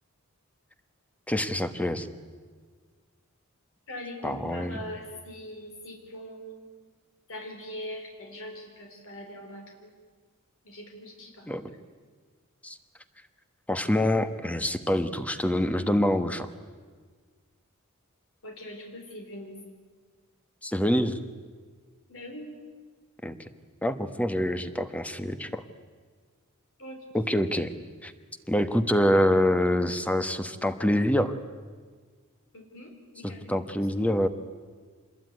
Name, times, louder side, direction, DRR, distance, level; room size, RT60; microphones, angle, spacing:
voice 1, 1.3-2.1 4.2-4.8 11.5-11.6 12.6-12.8 13.7-16.5 20.6-21.2 23.2-23.4 23.8-25.6 27.1-27.7 28.0-28.1 28.5-31.3 33.2-34.3, equal, 5° left, 10 dB, 1.2 m, -26 dB
voice 2, 3.9-6.7 7.3-10.0 10.6-11.7 18.4-19.6 22.1-22.6 26.8-27.0 27.5-27.7 32.5-33.5, left 1 dB, 65° left, 3 dB, 3.8 m, -42 dB
26.0 x 21.0 x 9.6 m, 1.6 s
head